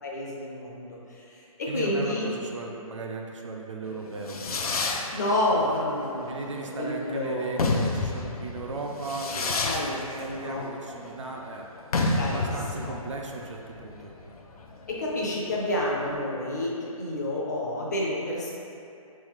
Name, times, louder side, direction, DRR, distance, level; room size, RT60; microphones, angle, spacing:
voice 1, 0.0-2.3 5.1-6.5 6.8-7.8 9.6-10.0 10.3-10.7 12.1-12.5 12.7-12.9 14.9-18.5, left 1 dB, 30° left, -4 dB, 0.5 m, -29 dB
voice 2, 1.7-4.4 6.3-11.7 12.3-14.1, right 3 dB, 55° right, 1 dB, 0.5 m, -37 dB
Fireworks, 3.9-16.1, left 3 dB, 80° left, 0.5 m, -31 dB
3.5 x 3.3 x 3.5 m, 2.6 s
hypercardioid pair, 170°, 19 cm